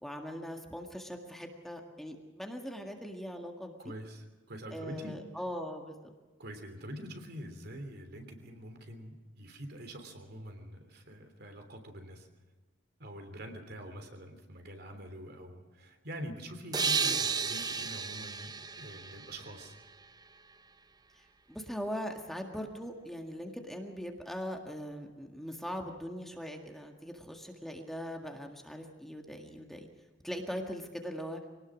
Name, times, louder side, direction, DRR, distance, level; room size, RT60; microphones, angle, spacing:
voice 1, 0.0-3.9 4.7-6.1 17.0-17.2 21.1-29.9 30.2-31.4, equal, ahead, 3 dB, 1.9 m, -41 dB
voice 2, 3.8-5.2 6.4-12.3 13.0-19.8, equal, 60° right, 6 dB, 3.3 m, -45 dB
sound 1, 16.7-20.2, right 5 dB, 20° right, 0.7 m, -33 dB
25.0 x 19.0 x 6.3 m, 1.3 s
head